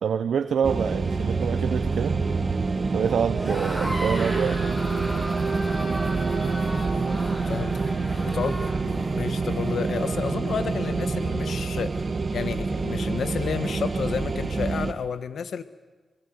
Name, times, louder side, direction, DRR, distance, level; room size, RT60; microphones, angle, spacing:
voice 1, 0.0-2.2 2.9-4.8, right 7 dB, 80° right, 10 dB, 0.8 m, -26 dB
sound 1, 0.6-14.9, right 4 dB, 45° right, 1.9 m, -27 dB
sound 2, 3.3-8.8, equal, 10° left, 8.0 m, -36 dB
sound 3, 4.6-10.5, left 1 dB, 40° left, 5.2 m, -45 dB
voice 2, 8.2-11.9 12.3-15.6, left 6 dB, 75° left, 12 dB, 1.4 m, -31 dB
25.0 x 21.5 x 8.0 m, 1.3 s
cardioid pair, 55°, 0 cm